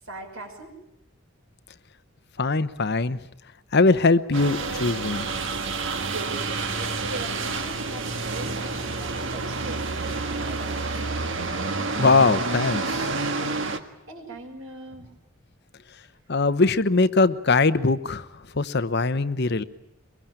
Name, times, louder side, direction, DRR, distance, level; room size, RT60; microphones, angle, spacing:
voice 1, 0.1-0.8 6.0-9.9 10.4-11.2 13.6-15.1, right 2 dB, 80° right, 3 dB, 6.2 m, -41 dB
voice 2, 2.4-3.2 3.7-5.3 12.0-13.1 16.3-18.3 18.5-19.6, left 3 dB, 50° left, 13 dB, 0.9 m, -21 dB
sound 1, 4.3-13.8, right 3 dB, 60° right, 1.7 m, -29 dB
24.0 x 22.0 x 9.0 m, 0.84 s
head